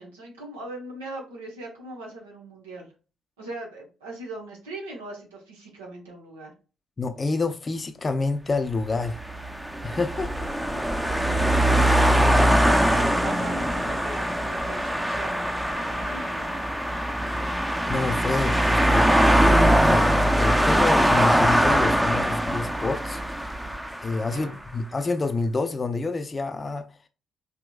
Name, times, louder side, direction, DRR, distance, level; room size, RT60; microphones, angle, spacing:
voice 1, 0.0-2.9 3.4-6.5 12.6-16.6 24.2-24.6, right 2 dB, 80° right, 1.1 m, -40 dB
voice 2, 7.0-9.2 9.8-10.5 17.3-17.4 17.9-19.1 19.8-23.2 24.0-26.9, left 3 dB, 35° left, 0.5 m, -28 dB
sound 1, 9.0-24.4, equal, 5° right, 0.6 m, -22 dB
5.0 x 3.0 x 2.3 m
figure-of-eight pair, 40°, 0 cm